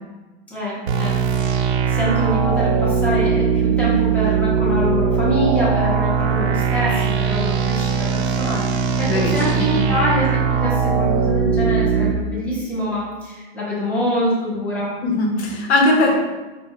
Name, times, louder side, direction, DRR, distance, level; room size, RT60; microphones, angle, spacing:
voice 1, 0.5-1.6 1.9-14.9, equal, 5° left, -7 dB, 0.7 m, -25 dB
sound 1, 0.9-12.1, right 6 dB, 80° right, 0.7 m, -20 dB
voice 2, 9.1-9.8 15.0-16.2, left 2 dB, 90° left, 0 dB, 1.0 m, -19 dB
5.3 x 2.3 x 2.9 m, 1.2 s
supercardioid pair, 160°, 32 cm